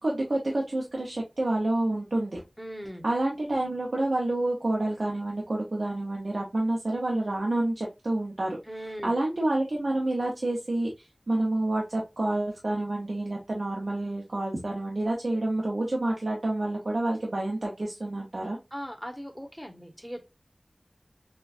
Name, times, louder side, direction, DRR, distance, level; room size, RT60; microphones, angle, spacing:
voice 1, 0.0-2.4 3.0-8.6 9.0-18.6, right 2 dB, 75° right, -2 dB, 0.8 m, -28 dB
voice 2, 2.6-3.1 8.6-9.2 18.7-20.3, equal, 5° right, 4 dB, 1.0 m, -39 dB
4.4 x 2.4 x 2.5 m, 0.24 s
wide cardioid pair, 45°, 0 cm